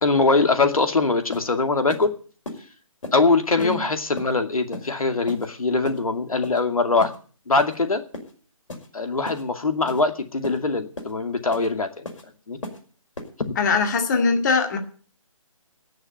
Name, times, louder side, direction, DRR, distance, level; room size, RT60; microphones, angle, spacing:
voice 1, 0.0-2.1 3.1-7.1 7.5-8.0 8.9-12.1 12.5-12.6 13.4-13.5, left 3 dB, 80° left, 6 dB, 2.4 m, -22 dB
sound 1, 0.8-0.9 1.3-1.5 1.9-2.1 2.4-2.6 3.0-3.2 3.6-3.8 4.2-4.3 4.7-4.9 5.3-5.5 5.8-6.0 6.4-6.6 7.0-7.2 7.6-7.8 8.1-8.3 8.7-8.9 9.2-9.4 9.9-10.0 10.4-10.6 11.0-11.1 11.5-11.7 12.0-12.2 12.6-12.8 13.2-13.3, left 2 dB, 60° left, 5.3 m, -35 dB
voice 2, 13.6-14.8, left 4 dB, 30° left, 5 dB, 2.1 m, -21 dB
18.5 x 6.6 x 9.2 m, 0.42 s
figure-of-eight pair, 160°, 18 cm